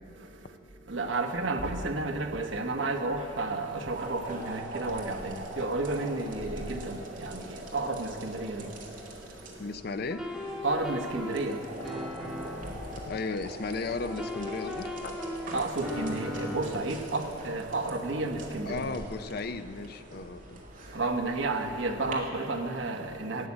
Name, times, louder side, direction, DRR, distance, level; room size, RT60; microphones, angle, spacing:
voice 1, 0.1-9.7 10.6-13.1 15.3-19.0 20.7-23.5, right 2 dB, 80° right, 1.1 m, -32 dB
sound 1, 3.2-22.1, right 1 dB, 45° right, 1.9 m, -43 dB
voice 2, 9.6-10.2 13.1-15.2 18.6-20.6, left 3 dB, 55° left, 0.5 m, -35 dB
sound 2, 10.1-12.8 14.1-16.7, left 1 dB, ahead, 1.6 m, -37 dB
12.5 x 8.4 x 8.7 m
head